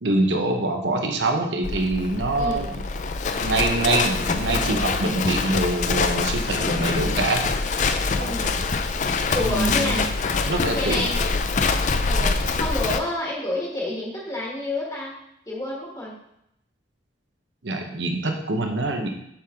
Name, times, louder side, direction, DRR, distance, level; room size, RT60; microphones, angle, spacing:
voice 1, 0.0-2.7 3.4-7.5 8.2-8.3 9.3-11.1 17.6-19.1, right 2 dB, 70° right, 3 dB, 1.1 m, -25 dB
Livestock farm animals working animals, 1.6-13.0, left 4 dB, 40° left, 0.4 m, -24 dB
voice 2, 2.3-2.7 8.2-8.7 9.3-10.1 10.7-11.2 12.0-15.1 15.5-16.2, left 2 dB, 20° left, -4 dB, 1.6 m, -29 dB
7.3 x 5.4 x 3.8 m, 0.77 s
head